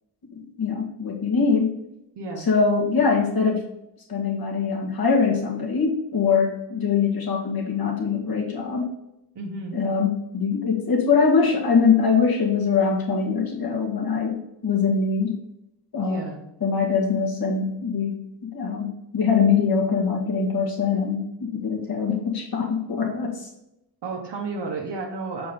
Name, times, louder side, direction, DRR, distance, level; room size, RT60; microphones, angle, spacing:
voice 1, 0.3-1.8 2.5-3.6 4.1-8.9 9.7-15.4 15.9-16.2 16.6-23.5, left 5 dB, 60° left, 0 dB, 1.9 m, -23 dB
voice 2, 2.1-2.5 9.3-9.8 16.0-16.4 24.0-25.5, right 3 dB, 75° right, -1 dB, 1.2 m, -32 dB
6.9 x 4.6 x 4.3 m, 0.85 s
wide cardioid pair, 160°, 41 cm